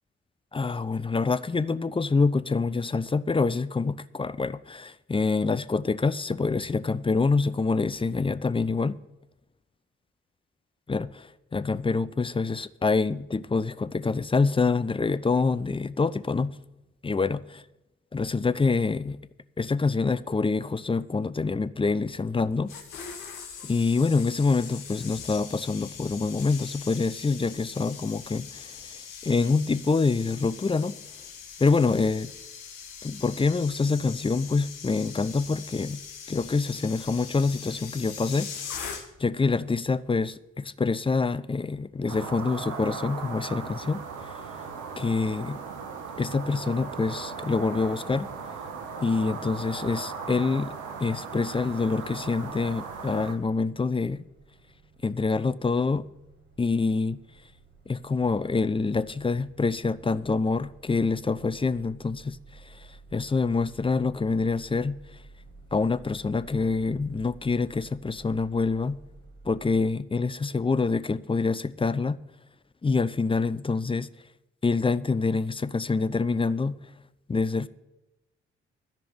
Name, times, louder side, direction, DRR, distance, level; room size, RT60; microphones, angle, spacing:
voice 1, 0.5-9.0 10.9-16.6 17.0-17.4 18.1-19.2 19.6-22.7 23.6-28.7 29.2-31.0 31.6-32.3 33.0-36.0 36.3-44.0 44.3-44.4 45.0-45.6 46.2-48.3 49.0-50.7 51.0-54.2 55.0-56.1 56.6-57.2 57.9-62.4 62.7-62.8 63.1-65.0 65.7-69.0 69.4-72.2 72.8-74.1 74.6-76.8 77.3-77.7, left 4 dB, 15° left, 0.5 m, -26 dB
sound 1, 22.4-39.4 39.6-39.9, left 6 dB, 75° left, 1.5 m, -42 dB
sound 2, 42.1-53.3, right 5 dB, 70° right, 1.4 m, -38 dB
sound 3, 51.6-69.8, right 3 dB, 35° right, 4.5 m, -53 dB
13.5 x 5.3 x 8.6 m
hypercardioid pair, 40°, 32 cm